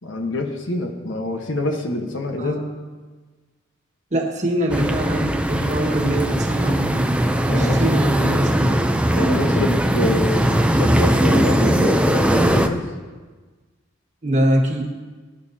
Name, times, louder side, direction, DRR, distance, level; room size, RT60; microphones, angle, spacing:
voice 1, 0.0-2.6 7.5-8.4 9.1-12.9, left 2 dB, 70° left, 3 dB, 1.3 m, -26 dB
voice 2, 2.4-2.7 4.1-8.7 14.2-14.9, right 1 dB, 40° right, 1 dB, 1.7 m, -23 dB
sound 1, 4.7-12.7, right 1 dB, 5° right, 0.5 m, -19 dB
20.0 x 11.0 x 2.8 m, 1.3 s
head